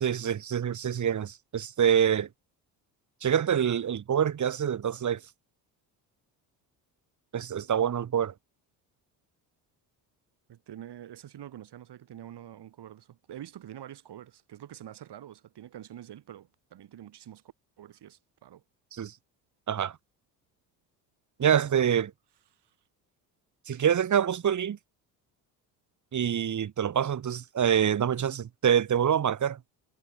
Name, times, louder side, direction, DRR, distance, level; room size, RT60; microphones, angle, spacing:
voice 1, 0.0-2.3 3.2-5.2 7.3-8.3 18.9-19.1 19.7-20.0 21.4-22.1 23.7-24.8 26.1-29.6, right 8 dB, 40° right, 1.5 m, -26 dB
voice 2, 10.5-17.4 17.8-18.6 22.6-22.7, right 11 dB, 60° right, 6.9 m, -46 dB
hypercardioid pair, 65°, 46 cm